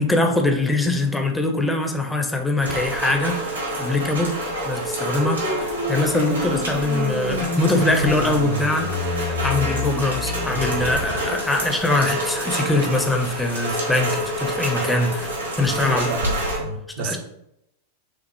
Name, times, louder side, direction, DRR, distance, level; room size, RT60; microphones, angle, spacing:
voice 1, 0.0-4.4 4.6-15.3 15.6-16.1 17.0-17.2, left 2 dB, 10° left, 0.5 m, -23 dB
Rain, 2.6-16.6, right 1 dB, 80° right, 1.2 m, -28 dB
sound 1, 4.2-11.3, left 3 dB, 50° left, 0.8 m, -29 dB
Brass instrument, 5.7-14.1, left 2 dB, 80° left, 1.3 m, -45 dB
voice 2, 15.8-17.2, right 3 dB, 55° right, 0.5 m, -31 dB
5.9 x 2.0 x 3.0 m
figure-of-eight pair, 90°, 0 cm